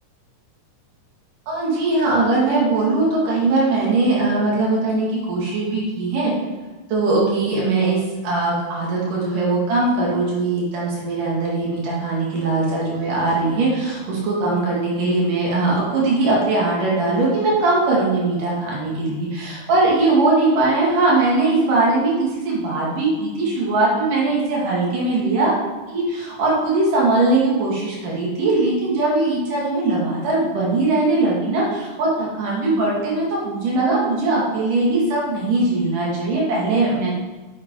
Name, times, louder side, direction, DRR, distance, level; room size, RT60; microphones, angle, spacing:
voice 1, 1.5-6.3 6.9-25.6 25.9-37.1, right 2 dB, 90° right, -5 dB, 4.3 m, -20 dB
8.9 x 8.7 x 4.9 m, 1.2 s
omnidirectional pair, 3.6 m